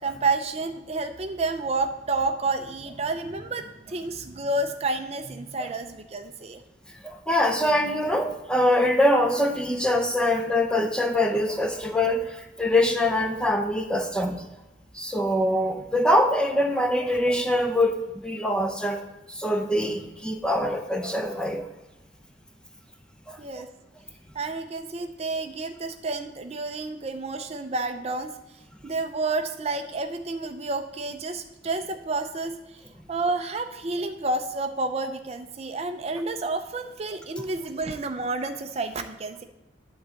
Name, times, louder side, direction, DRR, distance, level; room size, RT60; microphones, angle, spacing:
voice 1, 0.0-6.6 23.4-23.7 24.3-28.3 28.8-39.4, right 3 dB, 35° right, 7 dB, 0.5 m, -30 dB
voice 2, 7.0-14.4 14.9-19.0 19.3-21.6 23.3-23.4, left 1 dB, 5° left, 4 dB, 0.7 m, -24 dB
10.5 x 3.8 x 7.0 m, 1.0 s
head